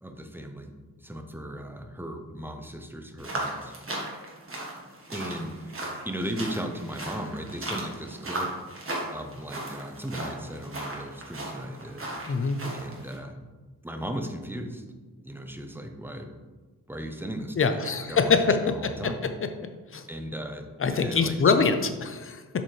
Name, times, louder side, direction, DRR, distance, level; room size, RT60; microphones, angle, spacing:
voice 1, 0.0-0.7 1.0-3.7 5.1-8.5 9.1-12.1 12.7-13.4 13.8-14.8 15.2-16.3 16.9-19.3 20.1-21.7, equal, 5° right, 5 dB, 0.6 m, -37 dB
sound 1, 3.2-13.2, right 1 dB, 40° right, 1.4 m, -37 dB
voice 2, 12.3-12.6 17.6-19.3 19.9-20.1 20.8-22.6, left 5 dB, 40° left, 8 dB, 0.6 m, -24 dB
7.3 x 5.3 x 3.2 m, 1.3 s
wide cardioid pair, 120°, 35 cm